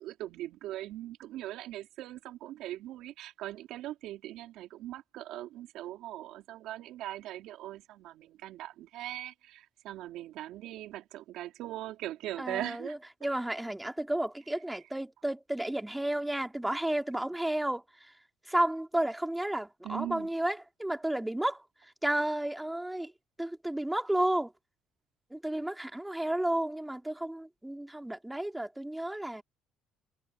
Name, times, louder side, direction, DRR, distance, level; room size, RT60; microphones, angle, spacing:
voice 1, 0.0-12.9 19.8-20.3, right 14 dB, 75° right, 3.1 m, -40 dB
voice 2, 12.4-18.1 18.5-21.6 22.0-23.1 23.4-24.5 25.3-29.4, right 1 dB, 10° right, 2.7 m, -32 dB
supercardioid pair, 75°, 0 cm